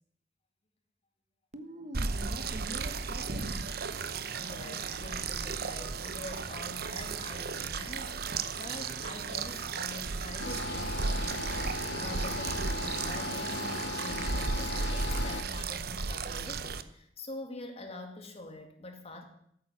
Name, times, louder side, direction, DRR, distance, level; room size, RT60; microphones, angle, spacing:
voice 1, 1.5-3.6, equal, 40° right, 9 dB, 1.2 m, -43 dB
sound 1, 1.9-16.8, right 4 dB, 60° right, 0.8 m, -35 dB
voice 2, 4.4-11.5 12.0-19.2, left 2 dB, 35° left, 4 dB, 2.3 m, -45 dB
sound 2, 10.4-15.4, left 2 dB, 70° left, 1.5 m, -37 dB
13.5 x 8.8 x 7.3 m, 0.70 s
head